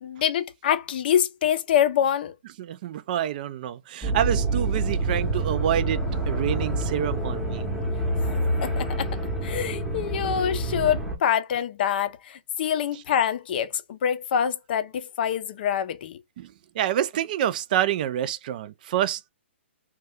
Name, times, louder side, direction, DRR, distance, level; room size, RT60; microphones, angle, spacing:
voice 1, 0.0-2.3 8.6-9.1 9.4-16.2, left 9 dB, 50° left, 0.5 m, -25 dB
voice 2, 2.6-6.0 6.3-7.7 12.9-13.0 16.4-19.3, right 11 dB, 45° right, 0.3 m, -27 dB
sound 1, 4.0-11.2, right 2 dB, 5° right, 0.7 m, -27 dB
2.7 x 2.2 x 3.4 m
hypercardioid pair, 140°, 7 cm